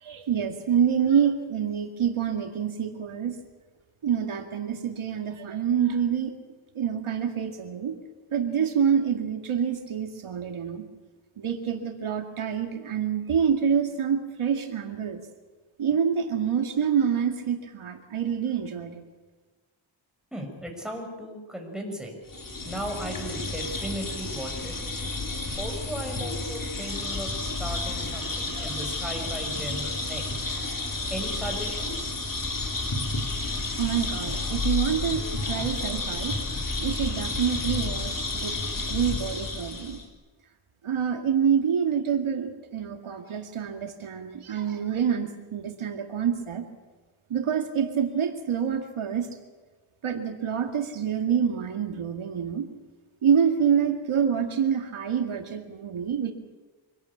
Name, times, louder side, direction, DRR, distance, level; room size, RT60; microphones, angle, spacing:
voice 1, 0.0-3.3 4.0-6.3 6.8-7.9 8.3-10.9 11.4-15.2 15.8-19.0 33.8-36.4 36.8-38.5 38.9-40.0 40.8-46.7 47.3-49.3 50.0-52.7 53.2-56.3, right 7 dB, 85° right, 5 dB, 2.2 m, -27 dB
voice 2, 20.3-22.2 22.7-24.7 25.6-30.4 31.1-32.1, equal, ahead, 1 dB, 6.1 m, -36 dB
sound 1, 22.3-40.0, left 3 dB, 40° left, 4.1 m, -31 dB
25.0 x 18.0 x 8.5 m, 1.3 s
wide cardioid pair, 95°, 48 cm